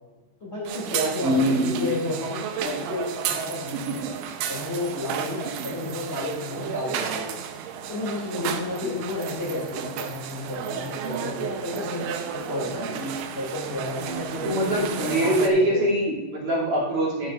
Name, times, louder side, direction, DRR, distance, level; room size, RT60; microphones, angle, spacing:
voice 1, 0.4-4.1 4.5-7.4 7.9-12.1 12.3-12.9 13.3-15.9, left 1 dB, 25° left, -5 dB, 1.5 m, -31 dB
sound 1, 0.7-15.5, right 8 dB, 85° right, 3.1 m, -33 dB
voice 2, 1.2-2.0 8.8-9.0 12.8-13.1 14.4-17.3, equal, 50° right, -6 dB, 3.7 m, -24 dB
12.0 x 10.5 x 2.5 m, 1.3 s
omnidirectional pair, 5.5 m